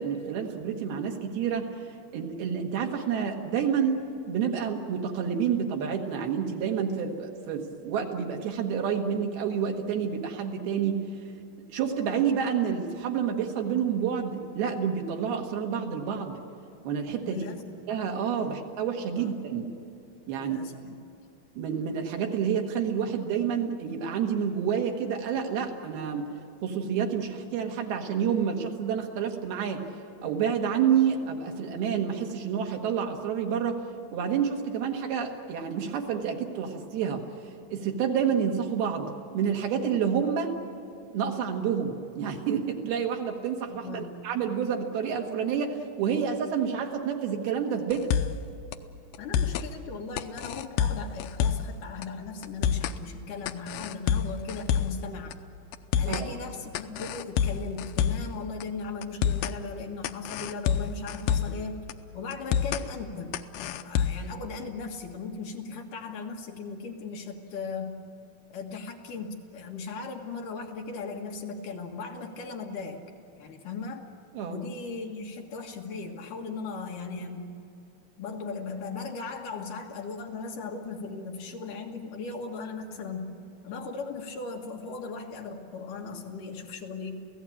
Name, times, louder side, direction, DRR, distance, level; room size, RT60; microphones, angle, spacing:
voice 1, 0.0-1.7 2.1-4.0 4.3-11.0 11.7-16.4 16.9-17.4 17.9-19.7 20.3-20.6 21.6-26.3 26.6-29.8 30.2-33.8 34.1-37.2 37.7-40.5 41.1-48.1 56.1-56.3 74.3-74.6, right 7 dB, 80° right, 3 dB, 3.6 m, -29 dB
voice 2, 17.2-17.8 18.4-18.6 19.1-19.3 20.3-20.8 43.8-44.1 49.2-55.4 56.0-61.9 62.1-68.0 68.5-73.0 73.4-74.1 74.5-77.5 78.2-83.4 83.6-87.3, left 4 dB, 65° left, 2 dB, 3.0 m, -38 dB
sound 1, 47.9-48.4 48.7-48.8 49.1-49.7 50.2-51.7 52.0-52.1 52.4-53.0 53.5-55.0 55.3-55.4 55.7-56.3 56.7-58.3 58.6-58.7 59.0-59.6 60.0-61.6 61.9-62.0 62.3-62.8 63.3-64.3, left 8 dB, 80° left, 2.4 m, -27 dB
28.5 x 16.5 x 8.6 m, 2.7 s
omnidirectional pair, 4.4 m